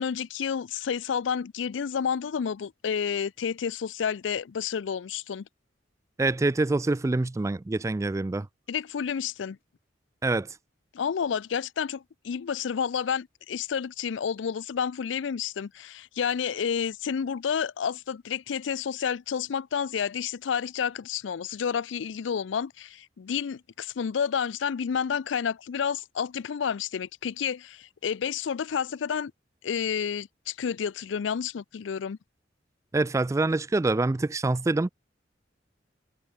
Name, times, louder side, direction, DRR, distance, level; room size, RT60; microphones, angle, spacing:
voice 1, 0.0-5.5 8.7-9.6 10.9-29.3 29.6-32.2, left 7 dB, 90° left, 0.4 m, -30 dB
voice 2, 6.2-8.5 10.2-10.5 32.9-34.9, right 2 dB, 15° right, 0.3 m, -25 dB
head